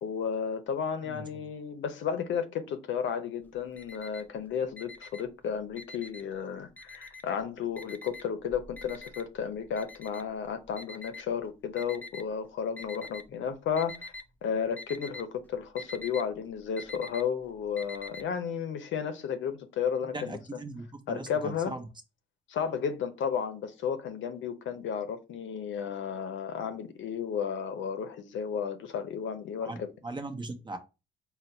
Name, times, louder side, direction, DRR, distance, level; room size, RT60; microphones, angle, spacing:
voice 1, 0.0-14.1 14.4-20.6 21.1-21.7 22.5-29.9, left 7 dB, 75° left, 0.7 m, -33 dB
Alarm, 3.4-4.4 4.7-6.4 6.8-7.4 7.8-12.2 12.8-13.4 13.6-14.3 14.5-18.2, left 3 dB, 10° left, 0.4 m, -45 dB
voice 2, 20.1-21.9 29.6-29.8 30.0-30.8, right 2 dB, 25° right, 0.8 m, -39 dB
4.0 x 2.1 x 4.3 m
cardioid pair, 90°, 20 cm